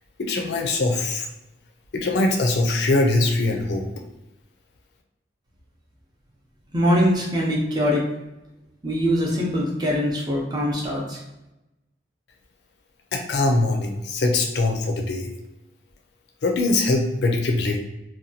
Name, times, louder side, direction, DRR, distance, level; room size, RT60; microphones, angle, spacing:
voice 1, 0.2-1.3 1.9-3.9 13.1-15.3 16.4-17.8, left 2 dB, 65° left, 3 dB, 0.5 m, -22 dB
voice 2, 6.7-8.1 8.8-11.2, equal, 20° right, -3 dB, 0.6 m, -22 dB
2.8 x 2.2 x 2.6 m, 0.94 s
head